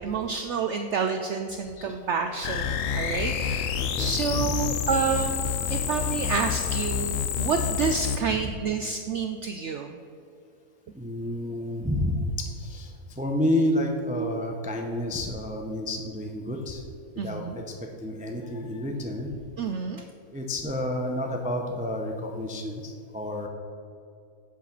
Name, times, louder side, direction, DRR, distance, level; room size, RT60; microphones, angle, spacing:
voice 1, 0.0-10.0 17.2-17.6 19.6-20.0, right 5 dB, 70° right, 5 dB, 0.7 m, -29 dB
sound 1, 2.4-8.2, left 8 dB, 65° left, 0.9 m, -28 dB
voice 2, 3.7-4.5 10.9-16.8 17.2-17.6 18.0-19.3 20.3-23.5, left 1 dB, 10° right, 2 dB, 0.3 m, -30 dB
8.2 x 5.0 x 7.1 m, 2.4 s
omnidirectional pair, 1.6 m